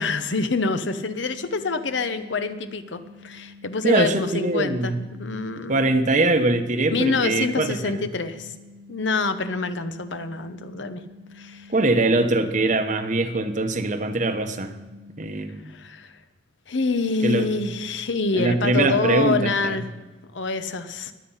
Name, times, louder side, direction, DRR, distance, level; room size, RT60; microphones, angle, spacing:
voice 1, 0.0-5.9 6.9-8.5 8.9-11.0 11.3-11.7 15.7-16.1 16.7-19.9 20.3-21.1, left 3 dB, 65° left, 10 dB, 0.9 m, -26 dB
sound 1, 0.8-15.4, left 3 dB, 75° right, 1.7 m, -48 dB
voice 2, 3.8-5.0 5.7-8.1 11.7-14.7 15.2-15.6 17.2-17.5 18.3-19.8, right 2 dB, 40° right, 8 dB, 1.0 m, -22 dB
21.5 x 8.2 x 5.6 m, 1.2 s
head